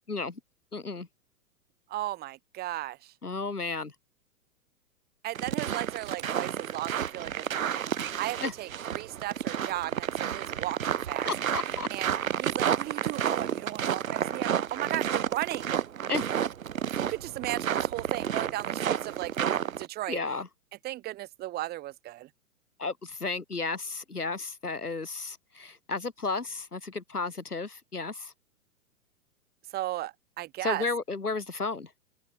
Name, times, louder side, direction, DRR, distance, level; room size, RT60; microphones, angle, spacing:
voice 1, 0.1-0.4 0.7-1.1 3.2-3.9 8.4-8.5 11.2-11.9 16.1-16.2 20.1-20.5 22.8-28.3 30.6-31.9, left 3 dB, 85° left, 3.5 m, -33 dB
voice 2, 1.9-3.1 5.2-11.3 11.9-15.7 16.9-20.2 20.8-22.3 29.7-30.9, right 15 dB, 20° right, 1.4 m, -36 dB
sound 1, 5.3-19.9, right 9 dB, 65° right, 2.4 m, -31 dB
open air
figure-of-eight pair, 115°, 44 cm